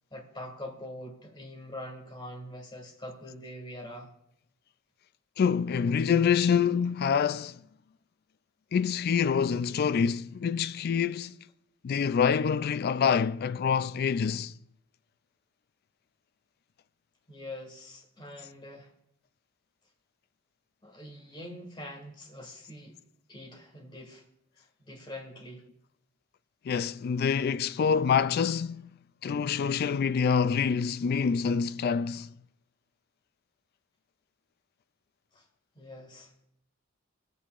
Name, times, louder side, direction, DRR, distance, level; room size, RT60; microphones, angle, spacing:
voice 1, 0.1-4.1 17.3-18.9 20.8-23.0 23.3-24.2 24.6-25.6 35.3-35.5 35.8-36.3, left 1 dB, 20° left, 1.9 m, -44 dB
voice 2, 5.4-7.6 8.7-11.4 11.8-14.5 26.6-28.9 29.2-32.3, left 6 dB, 50° left, 0.3 m, -26 dB
25.0 x 8.3 x 2.5 m
head